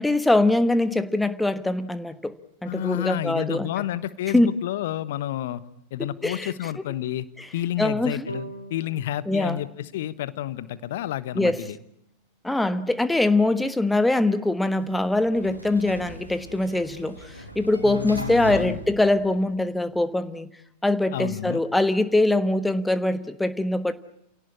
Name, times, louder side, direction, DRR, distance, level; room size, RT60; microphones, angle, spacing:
voice 1, 0.0-2.3 2.6-3.8 4.3-4.5 6.2-6.8 7.4-7.5 7.8-8.3 9.3-9.6 11.3-11.6 12.4-20.5 20.8-23.9, left 2 dB, 5° left, 12 dB, 1.3 m, -23 dB
voice 2, 2.7-5.6 5.9-7.3 7.5-11.8 17.8-18.8 21.1-21.6, left 12 dB, 55° left, 16 dB, 1.1 m, -30 dB
sound 1, 8.3-11.5, right 2 dB, 85° left, 2.6 m, -43 dB
Sliding door, 14.7-19.8, right 1 dB, 90° right, 2.5 m, -39 dB
29.0 x 17.5 x 9.9 m, 0.76 s
figure-of-eight pair, 90°, 0 cm